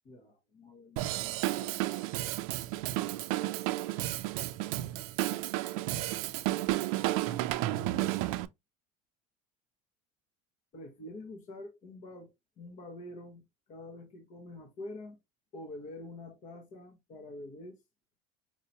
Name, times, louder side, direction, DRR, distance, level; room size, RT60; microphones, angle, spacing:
voice 1, 0.0-1.9 7.0-8.2 10.7-13.4 13.7-15.2 15.5-17.8, left 2 dB, 45° left, 1.1 m, -47 dB
Drum kit / Drum, 1.0-8.5, right 16 dB, 75° right, 0.4 m, -32 dB
4.7 x 2.8 x 2.7 m
supercardioid pair, 105°, 18 cm